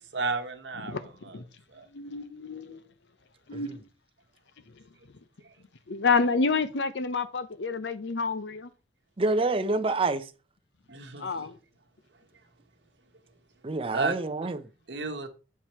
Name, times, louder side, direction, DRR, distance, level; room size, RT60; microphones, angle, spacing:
voice 1, 0.0-1.4 1.7-1.9 5.4-5.5 10.9-11.3 13.9-14.2 14.9-15.3, right 3 dB, 80° right, 1.2 m, -33 dB
voice 2, 0.9-1.4 1.9-2.9 3.5-3.9 4.7-4.8 5.9-8.7 11.2-11.6, left 4 dB, 85° left, 0.7 m, -29 dB
voice 3, 9.2-10.3 13.6-14.7, right 3 dB, 30° right, 0.6 m, -27 dB
7.3 x 4.7 x 4.3 m
head